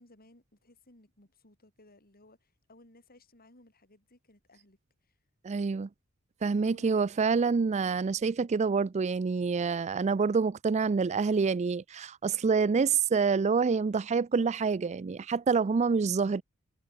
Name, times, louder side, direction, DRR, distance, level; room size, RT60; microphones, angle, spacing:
voice 1, 0.0-5.2 6.6-7.1, left 2 dB, 45° left, 7.7 m, -60 dB
voice 2, 5.4-5.9 6.4-16.4, right 5 dB, 30° right, 0.4 m, -27 dB
head